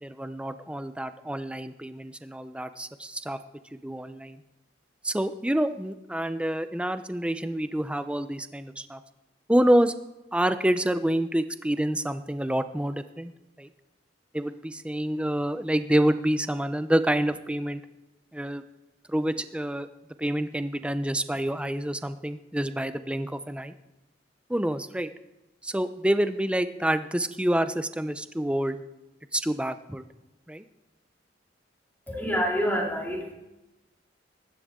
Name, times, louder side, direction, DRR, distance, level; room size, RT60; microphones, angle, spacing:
voice 1, 0.0-3.4 3.8-4.4 5.0-9.0 9.5-9.9 10.3-13.3 13.6-13.7 14.3-17.8 18.3-18.6 19.1-19.9 20.2-23.7 24.5-25.1 25.6-28.8 29.3-30.0 30.5-30.6, right 1 dB, 5° right, 11 dB, 0.6 m, -27 dB
voice 2, 32.1-33.3, equal, 10° left, -2 dB, 3.1 m, -27 dB
23.0 x 12.5 x 3.7 m, 0.99 s
head